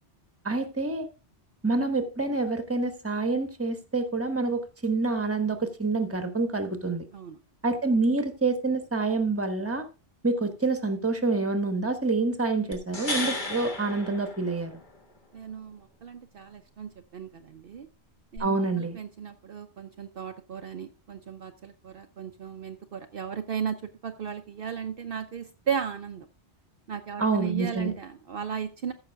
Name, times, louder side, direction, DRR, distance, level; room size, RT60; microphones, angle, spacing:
voice 1, 0.4-1.1 1.6-7.0 7.6-9.8 10.2-14.7 18.4-19.0 27.2-27.9, right 3 dB, 15° right, 8 dB, 1.1 m, -27 dB
sound 1, 12.7-15.0 18.4-18.5, left 2 dB, 45° left, 1.9 m, -34 dB
voice 2, 15.3-17.9 18.3-26.3 26.9-28.9, right 7 dB, 60° right, 6 dB, 0.8 m, -35 dB
14.5 x 6.0 x 3.5 m, 0.31 s
omnidirectional pair, 1.2 m